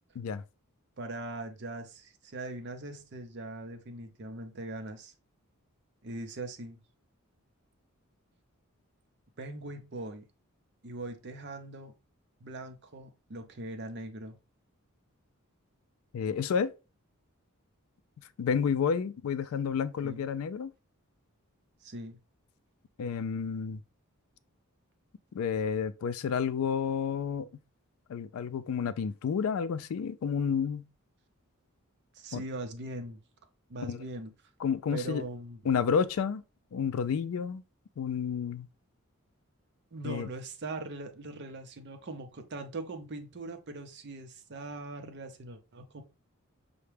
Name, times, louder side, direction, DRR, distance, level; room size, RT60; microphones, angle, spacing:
voice 1, 1.0-5.1 6.0-6.8 9.4-10.3 10.8-11.9 12.4-14.4 20.0-20.3 21.8-22.2 32.1-33.2 33.7-34.3 34.9-35.6 39.9-46.0, right 2 dB, 50° right, 0.6 m, -41 dB
voice 2, 16.1-16.7 18.4-20.7 23.0-23.8 25.3-27.5 28.1-30.9 32.3-32.4 33.9-34.0 34.6-35.2 35.7-36.4 36.7-37.6 38.0-38.7 40.0-40.3, left 6 dB, 70° left, 0.3 m, -30 dB
5.7 x 2.1 x 3.3 m
head